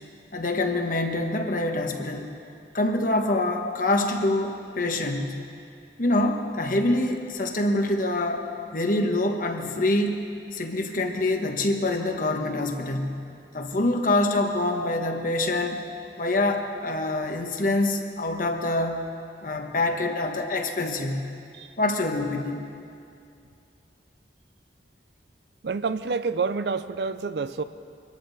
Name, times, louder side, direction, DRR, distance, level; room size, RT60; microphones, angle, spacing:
voice 1, 0.3-2.3 2.7-5.4 6.0-8.4 8.7-10.2 10.5-13.2 13.5-15.8 16.2-19.1 19.4-21.3 21.8-22.6, left 2 dB, 50° left, 4 dB, 1.3 m, -25 dB
voice 2, 25.6-27.6, right 4 dB, 70° right, 12 dB, 0.5 m, -28 dB
24.0 x 14.0 x 4.1 m, 2.4 s
head